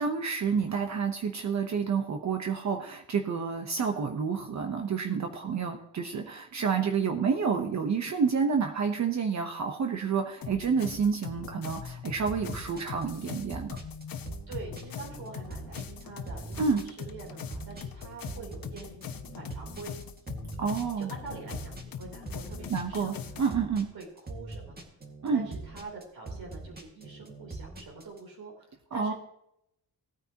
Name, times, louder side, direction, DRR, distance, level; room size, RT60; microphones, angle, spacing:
voice 1, 0.0-13.8 16.6-16.8 20.6-21.1 22.7-23.9 25.2-25.5 28.9-29.1, right 6 dB, 45° right, 4 dB, 0.9 m, -29 dB
sound 1, 10.4-23.5, left 7 dB, 65° left, 1.1 m, -41 dB
sound 2, 12.3-28.2, right 2 dB, 25° right, 1.9 m, -43 dB
voice 2, 14.5-20.0 21.0-23.5 23.9-24.8 25.3-29.1, right 3 dB, 70° right, -2 dB, 3.5 m, -45 dB
17.5 x 9.5 x 2.9 m, 0.80 s
wide cardioid pair, 150°, 37 cm